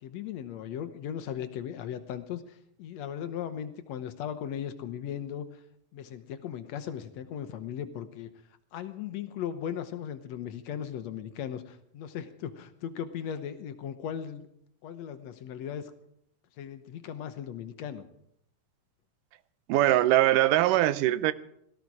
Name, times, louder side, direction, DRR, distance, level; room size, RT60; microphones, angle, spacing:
voice 1, 0.0-5.6 5.9-8.3 8.7-14.5 14.8-15.9 16.6-18.0, left 9 dB, 70° left, 11 dB, 2.0 m, -37 dB
voice 2, 19.7-21.3, right 14 dB, 90° right, 15 dB, 2.3 m, -22 dB
17.5 x 14.5 x 4.8 m, 0.74 s
omnidirectional pair, 3.6 m